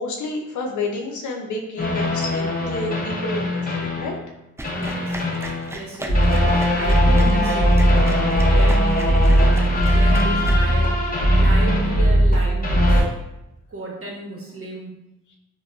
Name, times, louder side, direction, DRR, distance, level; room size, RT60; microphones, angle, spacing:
voice 1, 0.0-4.2, left 3 dB, 80° left, 1 dB, 0.6 m, -29 dB
sound 1, 1.8-4.3 4.6-13.0, equal, 30° left, 0.7 m, -19 dB
sound 2, 4.6-11.1, right 1 dB, 10° right, 0.4 m, -37 dB
voice 2, 4.7-5.2 5.7-8.0 8.4-13.0 13.7-15.0, right 2 dB, 50° right, -2 dB, 1.0 m, -34 dB
3.5 x 2.2 x 2.2 m, 0.90 s
cardioid pair, 55°, 30 cm